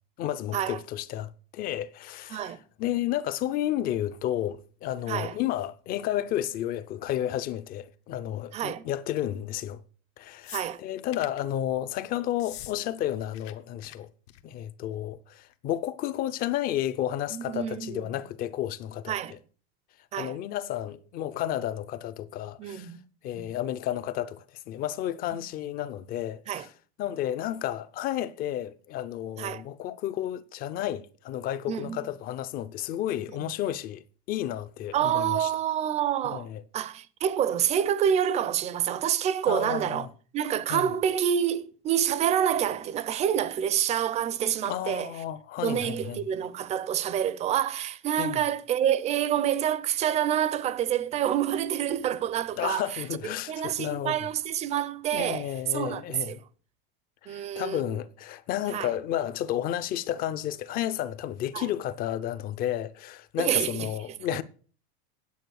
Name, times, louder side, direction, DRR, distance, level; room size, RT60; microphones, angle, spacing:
voice 1, 0.2-9.8 10.2-14.1 14.4-19.4 20.1-22.9 23.2-26.7 27.0-35.5 36.2-36.6 39.5-40.1 40.7-41.0 44.6-46.2 48.2-48.4 52.6-54.2 55.1-56.4 57.2-64.4, left 12 dB, 30° left, 0.5 m, -32 dB
voice 2, 2.3-2.6 5.1-5.3 8.5-8.9 10.5-10.8 17.3-18.0 19.1-19.3 20.1-20.3 22.6-23.0 23.4-23.5 26.5-26.6 29.4-29.6 31.7-32.0 33.4-33.5 34.9-36.5 36.7-40.1 40.3-45.1 45.6-52.8 53.5-55.5 55.7-56.0 56.3-56.4 57.3-58.0 58.7-58.9 61.5-61.7 63.4-63.9, right 10 dB, 20° right, 0.5 m, -27 dB
sound 1, 10.4-11.4 12.3-12.8 13.0-13.5 13.8-14.0 14.3-14.6 15.5-15.6, left 14 dB, 70° left, 1.2 m, -43 dB
9.3 x 8.5 x 6.4 m
supercardioid pair, 155°, 32 cm